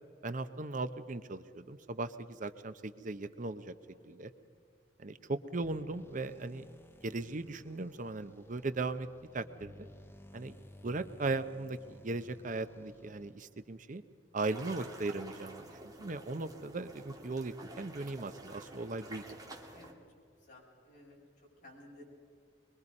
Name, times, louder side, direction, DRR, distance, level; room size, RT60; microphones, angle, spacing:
voice 1, 0.2-3.7 4.1-4.3 5.0-6.7 7.0-9.1 9.3-9.7 10.3-10.6 10.8-14.0 14.3-19.2, right 3 dB, 45° right, 11 dB, 0.7 m, -38 dB
voice 2, 3.9-4.5 19.7-20.0 20.4-22.1, left 1 dB, 45° left, -3 dB, 7.0 m, -57 dB
sound 1, 5.6-13.6, left 1 dB, 15° left, 0.8 m, -56 dB
sound 2, 14.4-19.9, right 2 dB, 20° right, 2.3 m, -50 dB
24.0 x 23.0 x 5.4 m, 2.3 s
head